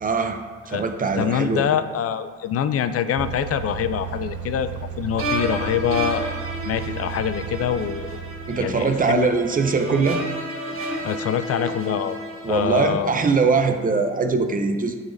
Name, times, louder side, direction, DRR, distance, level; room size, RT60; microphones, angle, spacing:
voice 1, 0.0-0.4 0.7-1.6 8.5-10.2 12.4-15.0, right 4 dB, 30° right, 6 dB, 0.6 m, -21 dB
voice 2, 1.2-4.7 5.0-6.3 6.6-8.2 8.6-9.3 11.0-12.2 12.5-13.1, left 9 dB, 50° left, 11 dB, 0.4 m, -25 dB
sound 1, 3.2-9.7, right 7 dB, 90° right, 0.5 m, -34 dB
sound 2, 5.2-13.4, right 1 dB, 45° right, 1.3 m, -31 dB
10.0 x 4.0 x 2.6 m, 1.5 s
cardioid pair, 90°, 30 cm